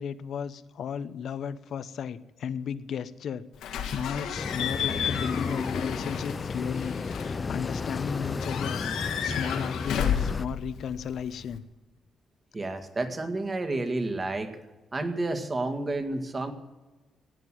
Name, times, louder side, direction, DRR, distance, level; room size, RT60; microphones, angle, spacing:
voice 1, 0.0-11.6, left 7 dB, 65° left, 14 dB, 0.8 m, -35 dB
Slam / Squeak / Alarm, 3.6-11.6, left 8 dB, 90° left, 2.0 m, -33 dB
sound 1, 4.4-10.5, left 4 dB, 35° left, 0.4 m, -33 dB
voice 2, 12.5-14.6 14.9-16.5, right 2 dB, 30° right, 7 dB, 1.9 m, -30 dB
16.5 x 9.5 x 7.5 m, 1.2 s
cardioid pair, 90°, 0 cm